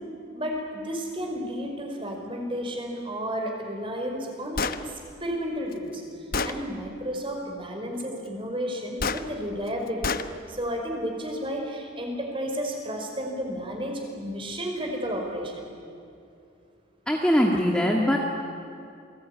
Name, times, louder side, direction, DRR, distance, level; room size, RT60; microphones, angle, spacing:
voice 1, 0.3-6.0 6.4-10.1 10.5-15.7, equal, 30° right, 2 dB, 5.2 m, -32 dB
Gunshot gunfire, 4.6-4.8 5.7-5.8 6.3-6.6 9.0-9.2 10.0-10.3, left 4 dB, 50° left, 1.0 m, -27 dB
voice 2, 17.1-18.2, equal, 5° left, -1 dB, 1.9 m, -21 dB
28.5 x 20.5 x 10.0 m, 2.6 s
head